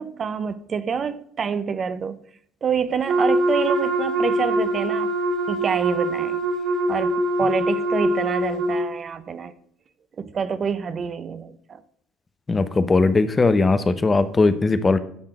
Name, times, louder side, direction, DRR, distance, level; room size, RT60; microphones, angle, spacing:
voice 1, 0.0-2.2 2.6-5.2 5.5-6.4 6.9-9.5 10.2-11.8, right 6 dB, 40° right, 0.7 m, -27 dB
Wind instrument woodwind instrument, 3.1-8.8, right 1 dB, 65° right, 2.1 m, -23 dB
voice 2, 12.5-15.0, left 3 dB, 25° left, 0.8 m, -19 dB
11.0 x 3.8 x 6.2 m
hypercardioid pair, 75°, 0 cm